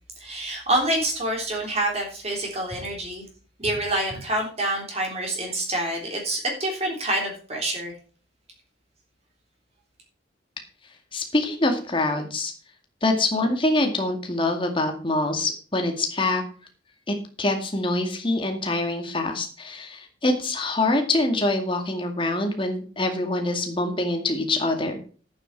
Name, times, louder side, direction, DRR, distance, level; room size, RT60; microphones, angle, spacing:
voice 1, 0.2-3.2 3.6-7.9, right 1 dB, 35° right, 0 dB, 3.5 m, -27 dB
voice 2, 11.1-12.5 13.0-16.4 17.1-25.0, left 2 dB, 25° left, 4 dB, 2.2 m, -25 dB
11.0 x 8.9 x 4.7 m, 0.40 s
head